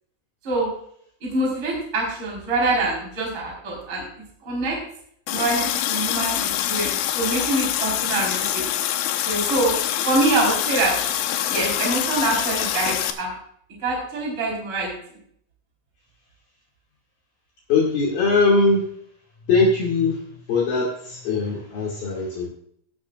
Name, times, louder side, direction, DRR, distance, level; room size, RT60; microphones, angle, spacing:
voice 1, 1.2-4.0 4.4-4.8 5.3-8.6 9.2-9.7 10.0-11.0 11.5-13.4 13.8-14.9, right 2 dB, 30° right, -2 dB, 4.7 m, -25 dB
Water tap faucet, 5.3-13.1, left 11 dB, 80° left, 3.3 m, -25 dB
voice 2, 17.7-18.8 19.5-20.2 20.5-22.5, left 3 dB, 55° left, -3 dB, 3.8 m, -20 dB
16.5 x 12.5 x 2.4 m, 0.64 s
omnidirectional pair, 5.5 m